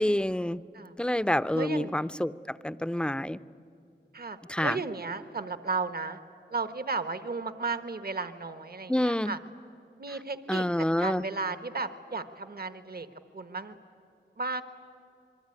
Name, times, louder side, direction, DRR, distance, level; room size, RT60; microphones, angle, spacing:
voice 1, 0.0-0.6 1.0-3.4 4.5-4.8 8.9-9.3 10.5-11.2, left 1 dB, 5° left, 14 dB, 0.6 m, -28 dB
voice 2, 1.5-2.0 4.1-6.2 6.5-9.4 10.0-10.6 11.0-13.1 13.3-13.8 14.4-14.6, right 4 dB, 60° right, 11 dB, 1.2 m, -34 dB
27.5 x 22.5 x 9.7 m, 2.7 s
wide cardioid pair, 80°, 18 cm